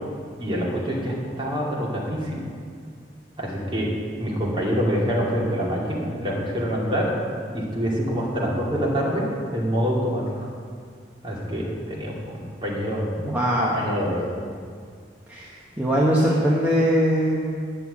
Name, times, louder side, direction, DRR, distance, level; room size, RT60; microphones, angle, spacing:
voice 1, 0.4-2.4 3.4-3.9 4.2-7.1 7.5-9.2 9.5-10.5 11.2-13.1 13.7-14.2, equal, 30° right, -5 dB, 2.6 m, -26 dB
voice 2, 13.2-13.8 15.3-17.6, equal, 10° right, -6 dB, 1.1 m, -21 dB
10.5 x 6.8 x 8.5 m, 2.1 s
head